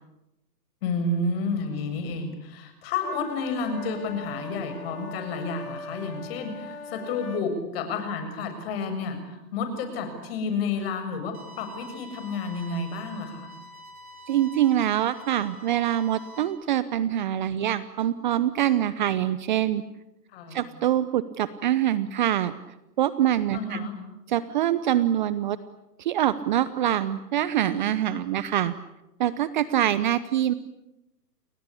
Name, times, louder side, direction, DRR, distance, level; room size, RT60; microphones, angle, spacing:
voice 1, 0.8-13.5 20.3-20.7 23.5-23.9, left 3 dB, 35° left, 8 dB, 7.3 m, -30 dB
sound 1, 3.0-7.5, left 3 dB, 65° left, 4.0 m, -40 dB
sound 2, 11.3-16.4, equal, 60° right, 8.0 m, -46 dB
voice 2, 14.3-19.8 20.5-22.5 23.0-23.8 24.3-25.6 26.0-28.7 29.2-30.5, right 11 dB, 30° right, 15 dB, 0.9 m, -24 dB
30.0 x 22.0 x 8.6 m, 0.93 s
hypercardioid pair, 145°, 49 cm